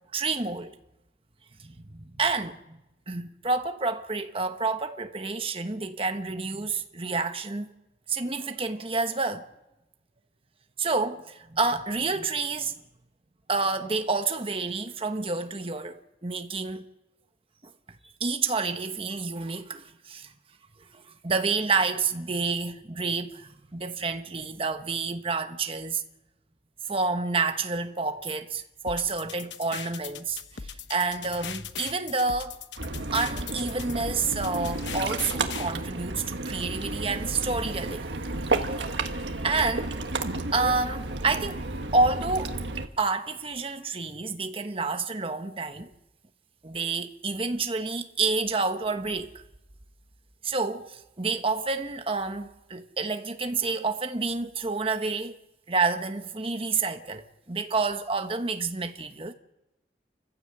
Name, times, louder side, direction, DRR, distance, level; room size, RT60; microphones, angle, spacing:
voice 1, 0.1-0.7 1.6-2.8 3.1-7.7 8.1-9.5 10.8-12.7 13.5-16.9 18.2-20.3 21.0-26.0 26.9-32.6 33.1-38.1 38.4-39.9 40.5-41.6 41.9-42.6 43.0-45.9 46.6-49.3 50.4-55.4 55.7-59.3, right 4 dB, 30° right, 1.2 m, -29 dB
sound 1, 28.9-35.7, left 7 dB, 90° left, 1.0 m, -39 dB
Ocean, 32.8-42.9, right 2 dB, 85° right, 1.5 m, -32 dB
28.0 x 15.5 x 7.8 m
head